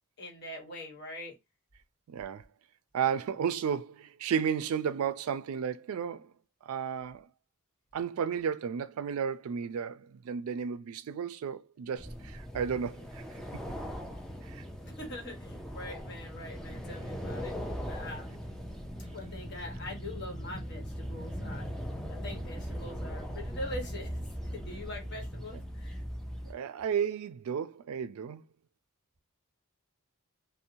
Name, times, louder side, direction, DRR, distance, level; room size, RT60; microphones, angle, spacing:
voice 1, 0.2-1.3 14.9-17.5 17.8-18.4 19.1-21.7 22.1-24.2 24.5-26.0, left 1 dB, 50° left, 1.0 m, -43 dB
voice 2, 2.1-2.4 2.9-6.3 6.6-7.3 7.9-13.2 14.4-14.6 25.5-25.6 26.5-28.4, right 7 dB, 85° right, 0.3 m, -33 dB
sound 1, 12.0-26.5, equal, ahead, 0.3 m, -39 dB
2.6 x 2.0 x 2.8 m
head